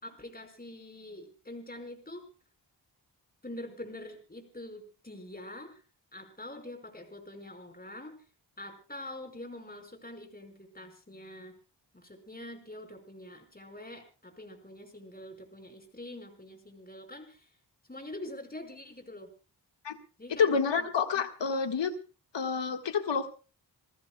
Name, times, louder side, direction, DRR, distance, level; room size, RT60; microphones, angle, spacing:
voice 1, 0.0-2.2 3.4-5.8 6.1-8.2 8.6-11.5 11.9-17.5 17.9-19.3 20.2-20.9 21.1-21.2, left 1 dB, 20° left, 5 dB, 5.2 m, -45 dB
voice 2, 20.4-21.9 22.3-23.3, left 5 dB, 70° left, 7 dB, 1.8 m, -28 dB
28.5 x 15.0 x 2.3 m, 0.34 s
cardioid pair, 50°, 45 cm